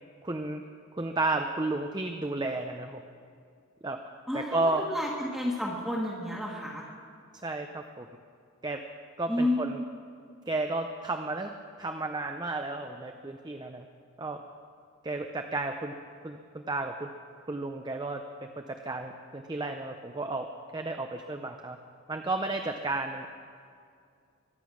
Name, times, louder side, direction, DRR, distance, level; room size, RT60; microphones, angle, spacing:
voice 1, 0.2-0.6 0.9-3.0 3.8-4.0 4.3-4.9 7.4-8.1 8.6-8.8 9.2-9.8 10.5-11.5 11.8-13.9 14.2-14.4 15.0-16.0 16.2-17.1 17.5-21.8 22.1-23.3, right 2 dB, 20° right, 5 dB, 0.6 m, -32 dB
voice 2, 4.3-6.8 9.3-9.7, left 1 dB, ahead, -5 dB, 1.5 m, -31 dB
23.0 x 9.1 x 6.3 m, 2.4 s
head